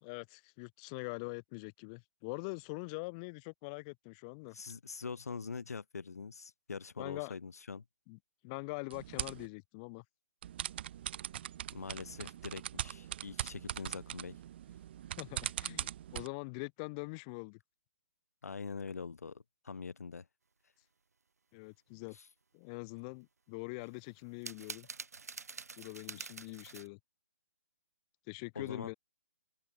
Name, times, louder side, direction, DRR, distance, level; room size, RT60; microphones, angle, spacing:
voice 1, 0.0-4.6 7.0-7.3 8.1-10.0 15.2-17.6 21.5-22.2 22.5-24.9 25.8-27.0 28.3-28.9, left 31 dB, 25° left, 1.9 m, -43 dB
voice 2, 4.5-7.8 11.7-14.4 18.4-20.3 22.1-22.3 28.5-28.9, left 5 dB, 85° left, 1.2 m, -44 dB
sound 1, 8.9-9.5 10.4-16.3, right 11 dB, 40° right, 1.4 m, -41 dB
sound 2, 23.8-26.9, right 4 dB, 85° right, 3.2 m, -46 dB
open air
hypercardioid pair, 155°, 8 cm